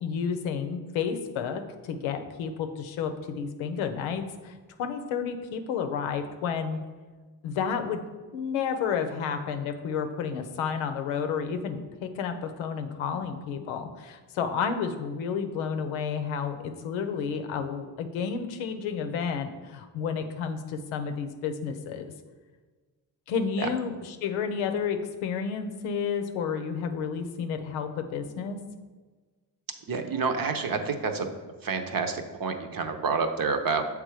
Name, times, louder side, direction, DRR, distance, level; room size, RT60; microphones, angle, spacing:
voice 1, 0.0-6.8 7.4-8.0 8.3-22.1 23.3-28.6, left 6 dB, 90° left, 7 dB, 0.6 m, -31 dB
voice 2, 29.9-31.3 31.6-33.8, right 5 dB, 45° right, 6 dB, 0.8 m, -28 dB
6.7 x 3.5 x 4.8 m, 1.4 s
supercardioid pair, 50°, 46 cm